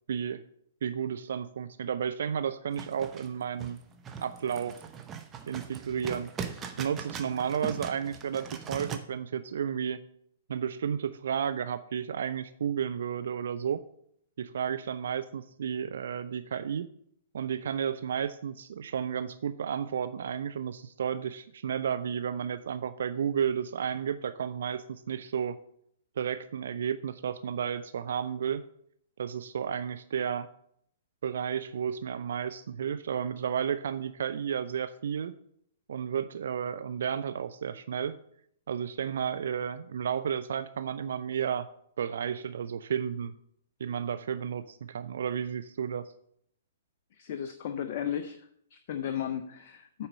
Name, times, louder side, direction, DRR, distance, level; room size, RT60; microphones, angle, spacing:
voice 1, 0.1-0.4 0.8-3.8 4.2-4.7 5.5-6.3 6.8-10.0 10.5-13.8 14.4-16.9 17.3-25.6 26.2-28.6 29.2-30.5 31.2-35.3 35.9-38.2 38.7-41.7 42.0-43.3 43.8-46.1, right 8 dB, 60° right, 12 dB, 0.4 m, -32 dB
sound 1, 2.7-9.0, right 6 dB, 20° right, 0.8 m, -40 dB
voice 2, 47.1-50.1, left 9 dB, 45° left, 8 dB, 0.6 m, -35 dB
8.6 x 4.3 x 6.4 m, 0.69 s
figure-of-eight pair, 115°, 0 cm